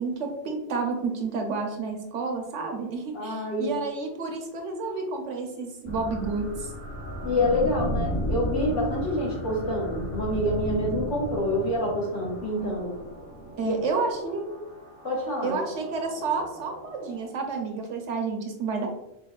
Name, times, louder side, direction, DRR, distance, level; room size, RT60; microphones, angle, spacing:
voice 1, 0.0-6.7 13.6-14.5 15.4-18.9, right 4 dB, 75° right, 3 dB, 1.0 m, -30 dB
voice 2, 3.1-3.7 7.2-12.9 13.6-13.7 15.0-15.6, left 1 dB, 75° left, -5 dB, 1.7 m, -27 dB
sound 1, 5.9-17.8, equal, 40° left, 1.3 m, -35 dB
5.8 x 2.2 x 2.3 m, 0.88 s
omnidirectional pair, 1.3 m